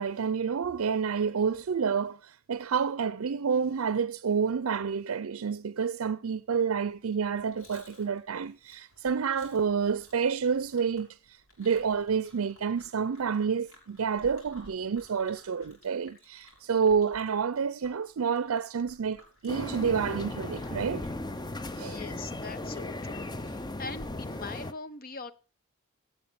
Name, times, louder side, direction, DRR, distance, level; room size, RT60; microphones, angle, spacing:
voice 1, 0.0-21.1 21.8-22.0, right 6 dB, 80° right, 0.5 m, -29 dB
Chewing mastication, 7.0-21.8, left 1 dB, 70° left, 5.7 m, -57 dB
sound 1, 19.5-24.7, left 2 dB, 20° left, 0.7 m, -37 dB
voice 2, 21.8-25.3, left 4 dB, 45° left, 1.0 m, -42 dB
16.5 x 6.6 x 5.8 m
head